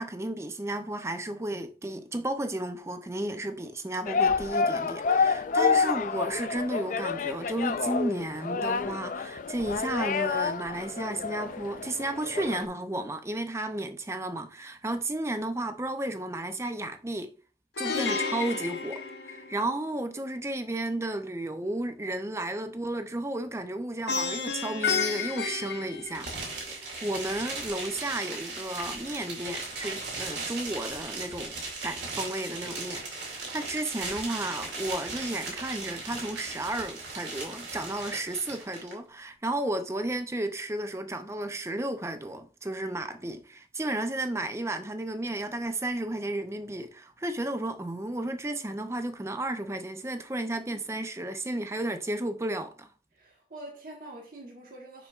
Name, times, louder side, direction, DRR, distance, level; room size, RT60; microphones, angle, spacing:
voice 1, 0.0-17.3 17.8-26.3 26.7-31.6 31.8-52.9, right 1 dB, 15° right, 0.5 m, -33 dB
sound 1, 4.1-12.6, left 5 dB, 45° left, 0.3 m, -28 dB
Plucked string instrument, 17.8-19.9 24.1-26.7, left 5 dB, 75° left, 0.8 m, -31 dB
sound 2, 26.1-38.9, right 3 dB, 75° right, 2.4 m, -37 dB
voice 2, 53.1-55.1, right 1 dB, 50° right, 1.3 m, -45 dB
6.9 x 5.6 x 2.4 m
head